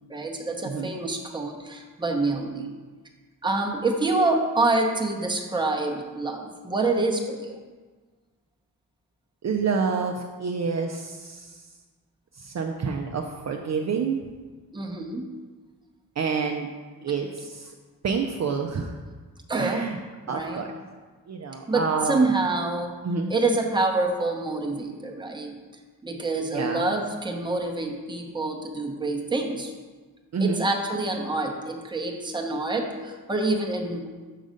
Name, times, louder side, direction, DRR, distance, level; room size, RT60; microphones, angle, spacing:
voice 1, 0.1-2.7 3.4-7.6 14.7-15.3 19.5-19.9 20.3-20.6 21.7-23.0 23.3-25.6 26.0-29.7 30.4-34.1, right 2 dB, 10° right, 1 dB, 0.8 m, -26 dB
voice 2, 9.4-11.6 12.4-14.2 16.2-16.7 17.0-17.7 18.0-18.9 19.6-20.0 20.3-20.7 21.3-22.2 23.0-23.3 26.5-26.9 30.3-30.6, right 5 dB, 45° right, 2 dB, 0.5 m, -28 dB
6.5 x 3.9 x 5.0 m, 1.4 s
wide cardioid pair, 95°, 37 cm